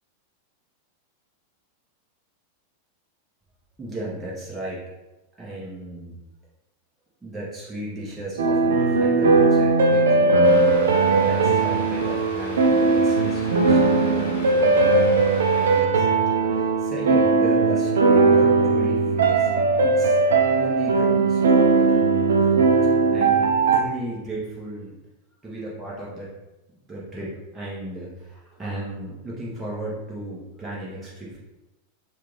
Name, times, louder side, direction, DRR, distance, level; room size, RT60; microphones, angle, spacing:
voice 1, 3.8-4.8 5.4-6.2 7.2-16.1 16.4-19.5 19.8-20.2 20.6-22.0 22.4-22.5 23.1-24.9 25.4-26.3 26.9-31.4, right 1 dB, 15° right, -7 dB, 0.9 m, -35 dB
sound 1, 8.4-23.8, right 3 dB, 65° right, 0.3 m, -19 dB
sound 2, 10.4-15.8, left 2 dB, 60° left, 0.8 m, -39 dB
3.6 x 2.4 x 3.1 m, 1.0 s
figure-of-eight pair, 90°, 0 cm